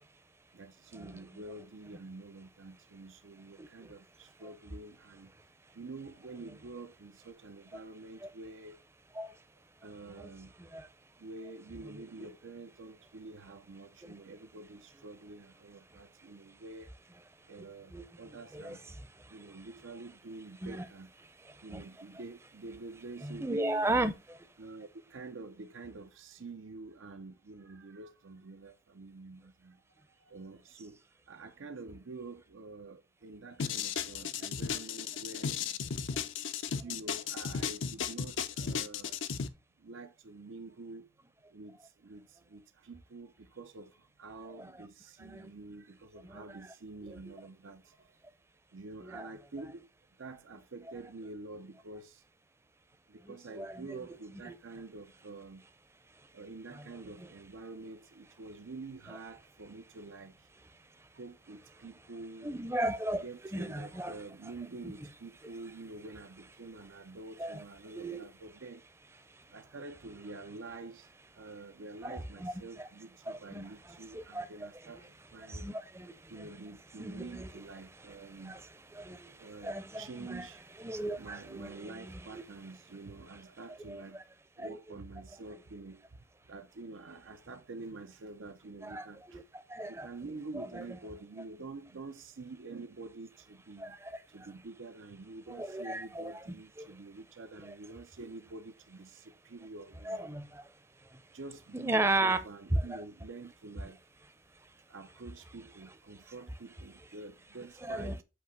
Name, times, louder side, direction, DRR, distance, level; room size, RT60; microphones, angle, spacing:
voice 1, 0.5-5.3 5.7-8.8 9.8-10.5 11.2-16.9 17.5-18.8 19.3-21.1 21.6-23.9 24.6-29.8 30.3-31.0 31.3-35.6 36.7-39.2 39.8-41.1 41.5-43.9 44.2-47.8 48.7-49.9 50.2-52.2 53.1-55.6 56.3-60.3 61.2-62.5 63.2-68.8 69.5-71.1 71.4-75.0 75.3-75.7 76.3-78.6 79.4-80.6 81.2-84.2 84.6-86.0 86.5-89.4 89.9-94.0 94.3-100.3 101.3-104.0 104.9-108.2, right 3 dB, 85° right, 0.7 m, -47 dB
voice 2, 23.2-24.4 44.6-44.7 45.2-45.5 46.2-46.4 47.1-47.3 49.0-49.3 53.2-54.0 54.4-54.6 62.4-63.2 63.5-64.2 67.4-67.6 67.9-68.2 72.0-72.5 72.8-72.9 73.3-73.7 74.1-74.7 75.5-76.5 77.0-77.5 78.5-78.6 78.9-80.5 80.8-82.4 83.9-84.0 84.6-84.8 88.8-90.1 90.5-90.8 93.8-94.2 95.5-96.3 96.8-96.9 100.0-100.7 101.7-102.4 102.7-102.8 107.8-108.2, right 2 dB, 15° right, 0.6 m, -35 dB
sound 1, 33.6-39.5, left 6 dB, 80° left, 0.6 m, -35 dB
8.1 x 2.9 x 6.0 m
head